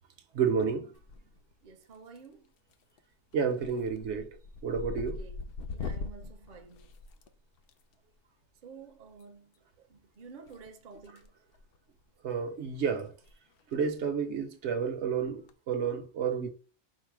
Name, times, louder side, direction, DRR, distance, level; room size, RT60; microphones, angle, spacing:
voice 1, 0.3-0.9 3.3-4.3 4.6-5.2 12.2-13.1 13.7-16.5, right 6 dB, 70° right, 1.0 m, -30 dB
sound 1, 0.9-1.5 1.8-2.3 2.7-3.0 3.3-7.7 9.1-9.2 10.5-11.3 11.5-11.8 12.3-12.4 12.6-12.7 13.1-13.3 13.6-13.7 15.2-15.5, left 4 dB, 60° left, 0.7 m, -41 dB
voice 2, 1.6-2.5 4.9-5.4 5.7-6.9 8.6-9.5 9.9-11.3, right 5 dB, 50° right, 0.7 m, -51 dB
4.7 x 2.1 x 4.6 m
omnidirectional pair, 1.2 m